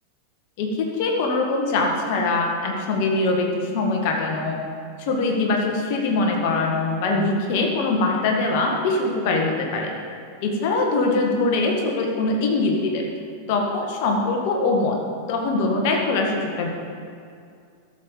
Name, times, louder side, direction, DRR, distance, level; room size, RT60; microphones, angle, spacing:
voice 1, 1.0-4.6 5.0-9.9 10.4-13.0 13.5-15.0 15.3-16.7, left 3 dB, 45° left, 1 dB, 1.7 m, -22 dB
13.0 x 7.2 x 5.0 m, 2.3 s
figure-of-eight pair, 90°, 0 cm